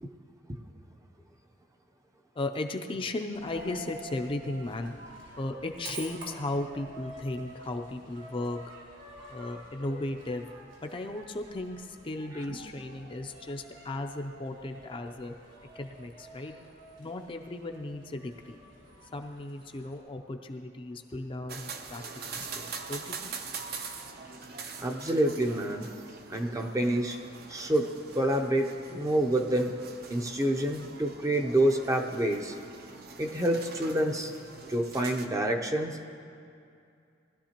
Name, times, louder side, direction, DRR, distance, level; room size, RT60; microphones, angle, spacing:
voice 1, 2.4-4.9 5.4-8.6 9.3-10.5 10.8-15.3 15.7-16.5 17.0-18.6 19.1-23.3, left 2 dB, 30° left, 4 dB, 0.5 m, -36 dB
Coin (dropping), 3.3-20.0, right 1 dB, 85° right, 3.4 m, -48 dB
sound 1, 21.5-35.3, right 5 dB, 55° right, 0.8 m, -43 dB
voice 2, 24.8-25.9 26.3-27.2 27.5-27.9 28.1-29.7 30.1-32.5 33.2-34.3 34.7-36.0, right 1 dB, 15° right, 3 dB, 0.6 m, -27 dB
19.0 x 12.0 x 2.9 m, 2.5 s
head